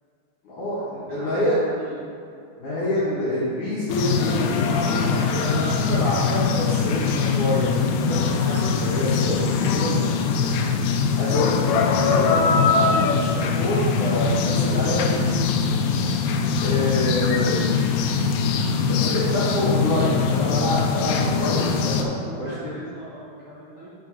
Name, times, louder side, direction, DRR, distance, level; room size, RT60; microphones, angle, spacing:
voice 1, 0.4-1.6 2.6-10.5 11.2-15.2 16.6-17.6 18.8-22.5, left 1 dB, 60° left, -11 dB, 2.2 m, -27 dB
voice 2, 1.1-2.0 11.3-11.6 15.2-15.5 17.7-17.8 22.3-23.9, right 1 dB, 55° right, -10 dB, 2.4 m, -39 dB
sound 1, 3.9-22.0, left 5 dB, 85° left, 3.2 m, -22 dB
6.6 x 5.2 x 6.3 m, 2.4 s
omnidirectional pair, 5.5 m